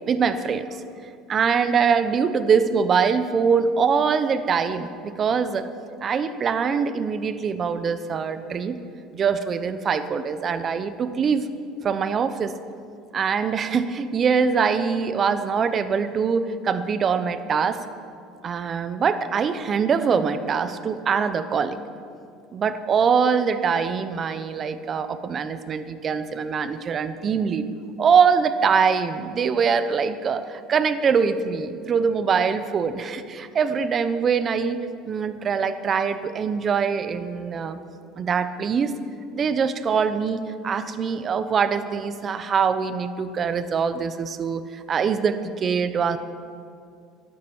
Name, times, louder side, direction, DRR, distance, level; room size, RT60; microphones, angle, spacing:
voice 1, 0.1-0.8 1.3-5.7 6.0-8.8 9.1-11.5 11.8-12.6 13.1-17.8 18.4-21.8 22.5-27.6 28.0-37.8 38.2-38.9 39.3-46.2, right 6 dB, 40° right, 11 dB, 0.9 m, -23 dB
13.0 x 11.5 x 7.2 m, 2.3 s
supercardioid pair, 105°, 0 cm